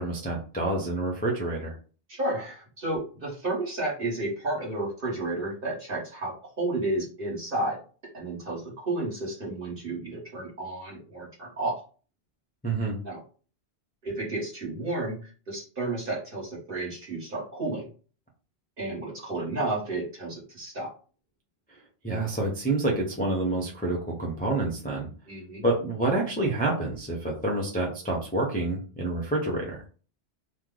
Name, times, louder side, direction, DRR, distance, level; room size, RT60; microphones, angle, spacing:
voice 1, 0.0-1.8 12.6-13.0 22.0-25.1 25.6-29.8, right 2 dB, 10° left, -3 dB, 0.5 m, -28 dB
voice 2, 2.1-7.8 8.1-11.8 13.0-13.2 14.0-17.8 18.8-20.9 25.3-25.6, right 2 dB, 50° right, -4 dB, 1.5 m, -32 dB
3.2 x 2.0 x 3.7 m, 0.38 s
omnidirectional pair, 1.1 m